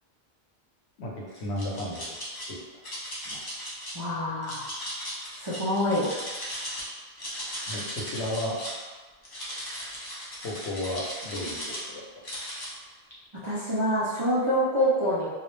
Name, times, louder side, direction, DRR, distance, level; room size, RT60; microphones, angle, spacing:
voice 1, 1.0-2.2 3.2-3.4 7.7-8.5 10.4-11.6 11.9-12.0, left 1 dB, 80° left, -4 dB, 0.9 m, -33 dB
sound 1, 1.3-2.5 2.8-3.9 4.4-6.8 7.1-8.8 9.2-11.9 12.2-12.7, equal, 30° left, 0.4 m, -37 dB
voice 2, 3.9-4.7 5.4-6.1 13.4-15.3, equal, 45° right, -11 dB, 0.3 m, -26 dB
2.3 x 2.0 x 3.0 m, 1.4 s
omnidirectional pair, 1.1 m